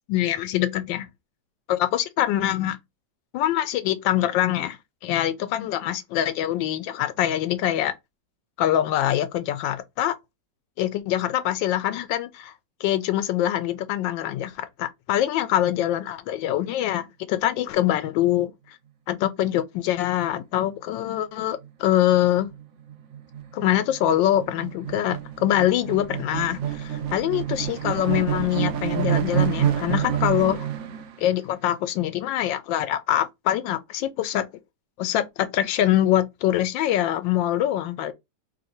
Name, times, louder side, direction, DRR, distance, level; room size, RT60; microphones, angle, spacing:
voice 1, 0.1-1.1 1.7-2.8 3.3-4.8 5.0-7.9 8.6-10.2 10.8-12.5 12.8-18.8 19.1-22.5 23.5-30.7 31.2-34.4 35.0-38.1, left 12 dB, 90° left, 1.3 m, -24 dB
sound 1, 20.4-20.7 21.0-21.2 21.4-31.1, right 10 dB, 90° right, 0.6 m, -28 dB
3.2 x 2.7 x 4.2 m
omnidirectional pair, 2.0 m